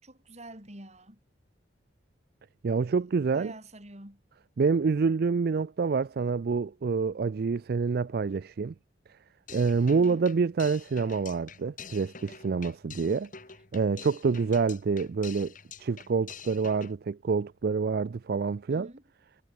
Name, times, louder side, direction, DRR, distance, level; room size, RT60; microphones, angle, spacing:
voice 1, 0.0-1.2 2.8-3.0 3.3-4.2 9.9-10.2 12.9-13.2 14.3-14.6 18.7-19.0, right 1 dB, 35° right, 7.2 m, -47 dB
voice 2, 2.6-3.5 4.6-8.7 9.5-13.3 13.7-15.5 15.8-18.9, right 5 dB, 55° right, 0.4 m, -27 dB
sound 1, 9.5-16.9, left 6 dB, 45° left, 3.2 m, -47 dB
head